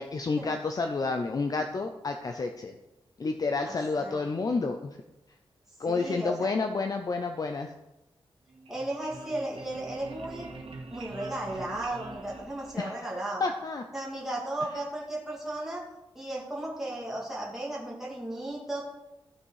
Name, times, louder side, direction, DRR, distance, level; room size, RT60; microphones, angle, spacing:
voice 1, 0.0-2.7 3.2-5.0 5.8-7.7 12.8-13.1 13.4-13.8, left 4 dB, 40° left, 5 dB, 0.6 m, -30 dB
voice 2, 3.6-4.2 5.9-6.5 8.7-10.5 10.9-13.4 13.9-15.8 16.2-18.8, right 1 dB, 5° right, -5 dB, 2.0 m, -35 dB
sound 1, 8.5-13.2, right 3 dB, 75° right, 1.8 m, -44 dB
13.5 x 6.0 x 4.8 m, 0.97 s
wide cardioid pair, 150°, 10 cm